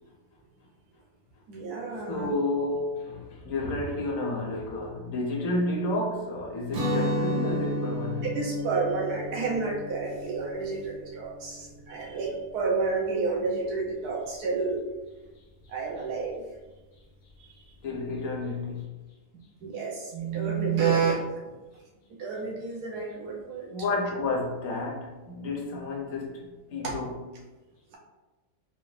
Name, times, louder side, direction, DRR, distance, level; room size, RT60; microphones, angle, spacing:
voice 1, 1.5-2.3 8.2-14.8 15.7-16.4 19.6-21.3 22.2-23.7 26.8-27.0, right 4 dB, 85° right, 1.4 m, -30 dB
voice 2, 2.0-8.3 17.8-19.0 23.7-27.3, left 2 dB, 65° left, 1.2 m, -31 dB
Guitar, 6.7-12.5, equal, 70° right, 1.3 m, -32 dB
3.9 x 2.6 x 3.2 m
omnidirectional pair, 1.6 m